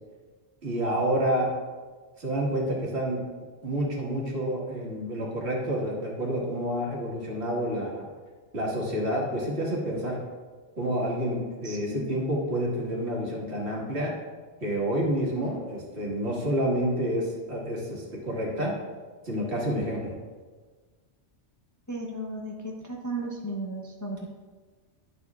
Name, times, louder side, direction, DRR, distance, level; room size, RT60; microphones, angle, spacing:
voice 1, 0.6-1.5 2.2-3.2 3.6-8.1 8.5-10.2 10.8-14.1 14.6-18.7 19.2-20.1, equal, 60° right, -4 dB, 2.0 m, -29 dB
voice 2, 11.6-12.1 21.9-24.3, right 1 dB, 20° left, -1 dB, 0.6 m, -35 dB
11.5 x 7.0 x 2.4 m, 1.4 s
omnidirectional pair, 1.2 m